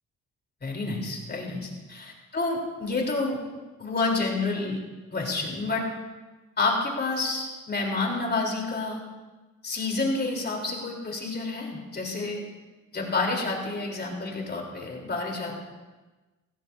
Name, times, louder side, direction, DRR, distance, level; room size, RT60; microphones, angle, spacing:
voice 1, 0.6-3.4 3.8-4.8 5.1-5.8 6.6-9.0 9.6-12.4 12.9-15.5, left 3 dB, 35° left, 0 dB, 3.7 m, -29 dB
17.5 x 15.5 x 2.7 m, 1.2 s
cardioid pair, 90°, 30 cm